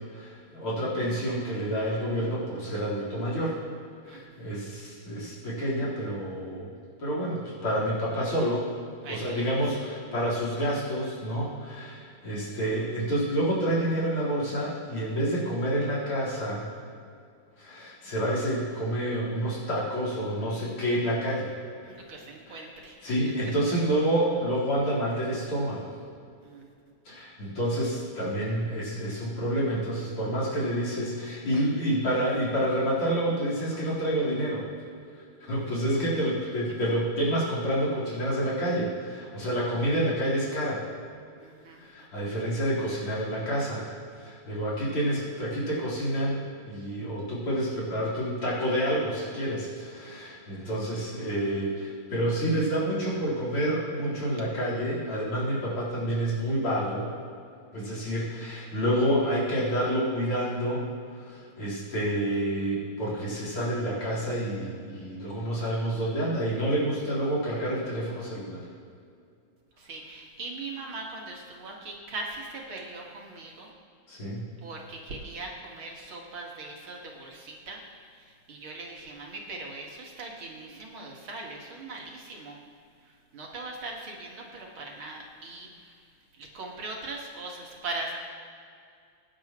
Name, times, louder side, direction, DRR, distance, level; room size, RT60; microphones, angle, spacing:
voice 1, 0.1-3.6 4.1-6.7 7.0-8.7 9.1-16.7 17.6-21.5 22.5-22.6 23.0-25.9 27.0-34.7 35.5-40.8 41.8-43.9 44.2-57.1 57.7-60.9 61.2-68.6 74.1-74.5, right 1 dB, 90° left, -6 dB, 5.1 m, -28 dB
voice 2, 4.0-4.4 9.0-9.6 21.8-23.0 26.4-26.7 35.5-35.7 41.4-41.9 42.1-42.3 69.8-73.7 74.6-77.8 78.2-82.6 83.3-86.0 86.4-88.1, right 2 dB, 70° right, -1 dB, 2.7 m, -40 dB
23.0 x 10.5 x 3.1 m, 2.3 s
omnidirectional pair, 2.3 m